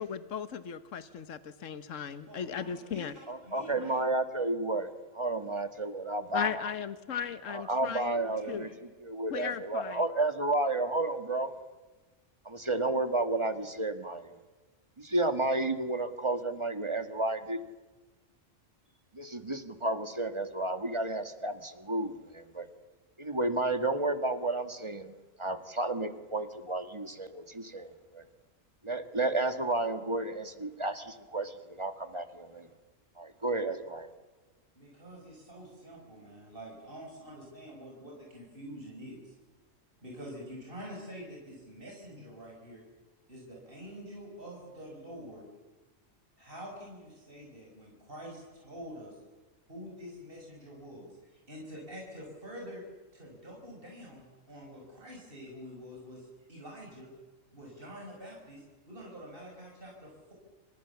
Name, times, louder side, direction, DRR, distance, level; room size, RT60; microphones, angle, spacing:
voice 1, 0.0-3.1 6.3-8.7 9.3-10.0, left 8 dB, 75° left, 12 dB, 1.5 m, -37 dB
voice 2, 2.2-4.0 8.2-8.7 9.4-9.5 34.8-39.3 40.0-42.8 43.3-45.5 46.4-49.2 49.7-52.8 53.1-57.1 57.5-60.3, equal, 45° right, -1 dB, 5.9 m, -47 dB
voice 3, 3.3-6.6 7.5-8.7 9.0-11.5 12.5-14.4 15.0-17.6 19.1-22.7 23.2-28.2 28.8-32.7 33.2-34.1, right 2 dB, 25° right, 9 dB, 1.9 m, -32 dB
29.5 x 27.5 x 7.1 m, 1.2 s
omnidirectional pair, 1.3 m